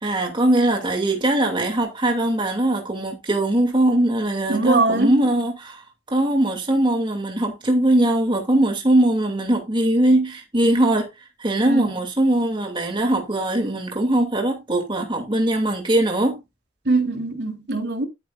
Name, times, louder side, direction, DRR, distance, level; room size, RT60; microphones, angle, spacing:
voice 1, 0.0-11.1 11.4-16.4, right 1 dB, 30° right, 2.8 m, -21 dB
voice 2, 4.5-5.2 11.7-11.9 16.9-18.1, right 2 dB, 70° right, 3.7 m, -21 dB
13.5 x 8.8 x 2.6 m
head